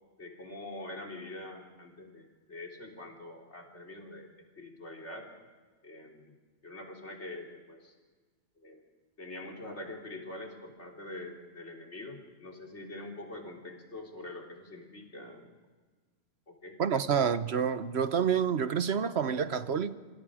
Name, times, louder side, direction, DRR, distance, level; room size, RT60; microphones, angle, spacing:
voice 1, 0.2-4.3 4.6-5.3 5.8-6.4 6.6-7.9 8.6-8.8 9.2-15.4 16.5-17.3, left 2 dB, 75° left, 3.8 m, -44 dB
voice 2, 16.8-19.9, right 7 dB, 65° right, 1.2 m, -28 dB
26.5 x 26.5 x 5.0 m
omnidirectional pair, 1.2 m